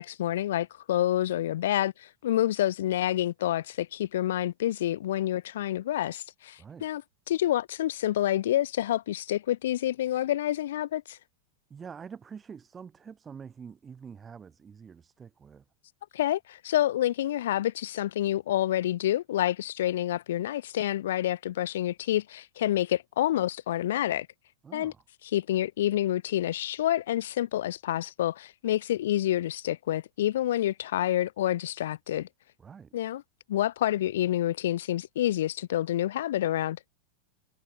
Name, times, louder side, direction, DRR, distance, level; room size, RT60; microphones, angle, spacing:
voice 1, 0.0-7.0 7.3-11.2 16.1-24.3 24.7-24.9 25.3-32.3 32.9-33.2 33.5-36.8, left 13 dB, 60° left, 0.3 m, -28 dB
voice 2, 11.7-15.6 24.6-25.0 32.6-32.9, right 6 dB, 20° right, 1.0 m, -46 dB
figure-of-eight pair, 90°, 0 cm